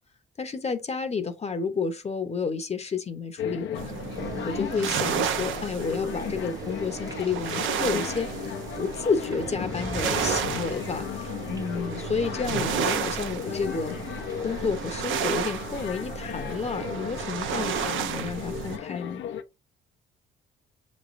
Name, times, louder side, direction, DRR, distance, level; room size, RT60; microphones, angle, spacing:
voice 1, 0.4-4.0 4.4-8.5 8.8-13.9 14.4-19.2, left 5 dB, 35° left, 0.8 m, -30 dB
sound 1, 3.4-19.4, left 9 dB, 70° left, 0.6 m, -36 dB
sound 2, 3.8-18.8, right 8 dB, 80° right, 0.6 m, -32 dB
sound 3, 4.1-15.1, right 3 dB, 20° right, 0.5 m, -45 dB
6.7 x 3.1 x 2.5 m
cardioid pair, 90°, 20 cm